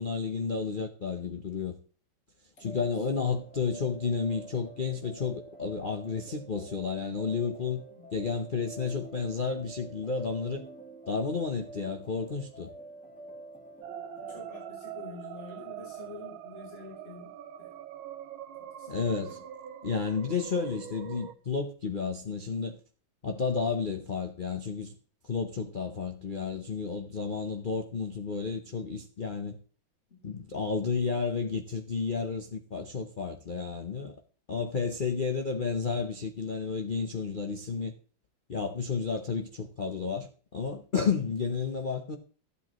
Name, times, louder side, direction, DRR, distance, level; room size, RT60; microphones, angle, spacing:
voice 1, 0.0-1.8 2.6-7.8 8.1-10.6 11.1-12.7 18.9-19.4 19.8-22.8 23.2-24.9 25.2-29.6 30.2-34.1 34.5-37.9 38.5-40.3 40.5-42.2, left 5 dB, 90° left, 0.4 m, -31 dB
sound 1, 2.6-14.4, right 1 dB, 5° left, 1.5 m, -47 dB
shepard tone seamless, 13.8-21.4, right 10 dB, 80° right, 1.6 m, -43 dB
voice 2, 14.2-17.3 17.6-17.7 18.6-19.4 30.1-30.2, left 5 dB, 30° left, 3.6 m, -48 dB
15.0 x 8.3 x 3.0 m
omnidirectional pair, 2.2 m